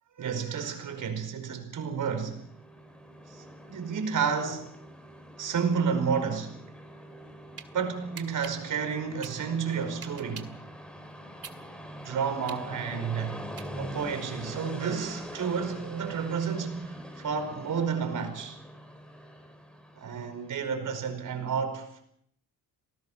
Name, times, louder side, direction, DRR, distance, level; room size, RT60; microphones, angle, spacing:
voice 1, 0.2-2.4 3.3-4.7 5.4-6.6 7.7-10.5 12.0-13.4 13.8-18.6 20.0-22.0, right 6 dB, 60° right, 5.1 m, -31 dB
Train, 2.0-20.6, equal, 5° left, 4.3 m, -44 dB
sound 1, 7.1-7.7 8.1-10.6 11.0-14.1, right 6 dB, 40° right, 2.2 m, -45 dB
28.5 x 19.5 x 5.6 m
cardioid pair, 125°, 36 cm